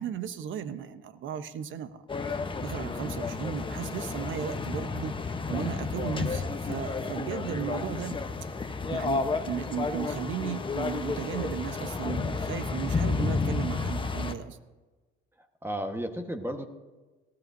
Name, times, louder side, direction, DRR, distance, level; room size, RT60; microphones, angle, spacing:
voice 1, 0.0-2.0 2.3-8.2 8.9-14.6, right 8 dB, 65° right, 11 dB, 1.0 m, -35 dB
sound 1, 2.1-14.3, left 4 dB, 25° left, 1.0 m, -31 dB
voice 2, 15.6-16.6, equal, 10° right, 6 dB, 1.4 m, -34 dB
18.5 x 15.5 x 2.7 m, 1.2 s
supercardioid pair, 85°, 21 cm